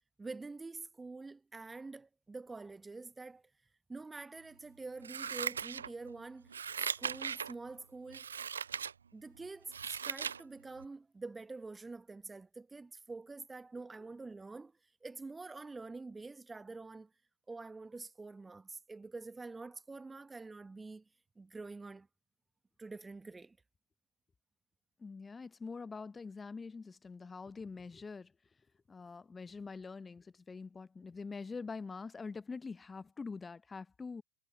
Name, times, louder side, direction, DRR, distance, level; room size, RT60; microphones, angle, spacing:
voice 1, 0.2-3.4 3.9-6.5 7.0-8.2 9.1-14.7 15.0-17.1 17.5-21.0 21.4-22.1 22.8-23.6, right 3 dB, 10° right, 1.3 m, -46 dB
Scissors, 5.0-6.1 6.5-7.5 8.1-8.9 9.4-10.4 10.8-10.9, right 7 dB, 75° right, 0.5 m, -38 dB
voice 2, 25.0-28.3 28.9-34.2, left 4 dB, 15° left, 0.7 m, -45 dB
figure-of-eight pair, 85°, 0 cm